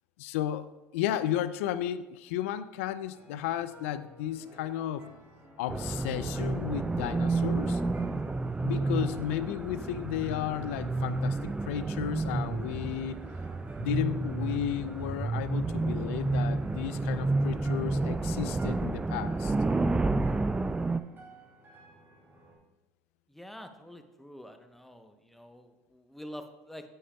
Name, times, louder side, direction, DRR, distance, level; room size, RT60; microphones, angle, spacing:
voice 1, 0.2-5.1 5.6-7.8 8.6-13.2 13.8-19.5, left 11 dB, 80° left, 14 dB, 0.4 m, -33 dB
sound 1, 3.1-22.6, right 1 dB, 30° right, 2.8 m, -53 dB
sound 2, 5.7-21.0, right 3 dB, 10° right, 0.3 m, -30 dB
voice 2, 23.3-26.8, equal, 5° left, 7 dB, 0.8 m, -47 dB
8.9 x 8.5 x 2.3 m, 1.1 s
hypercardioid pair, 80°, 7 cm